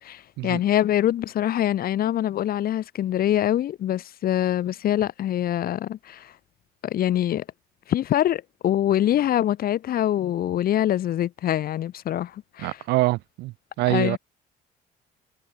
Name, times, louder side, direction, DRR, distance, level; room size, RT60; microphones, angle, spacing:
voice 1, 0.0-6.3 6.8-7.4 7.9-12.8 13.9-14.2, left 12 dB, 60° left, 5.2 m, -24 dB
voice 2, 12.6-14.2, right 20 dB, 90° right, 1.7 m, -25 dB
cardioid pair, 110°, 17 cm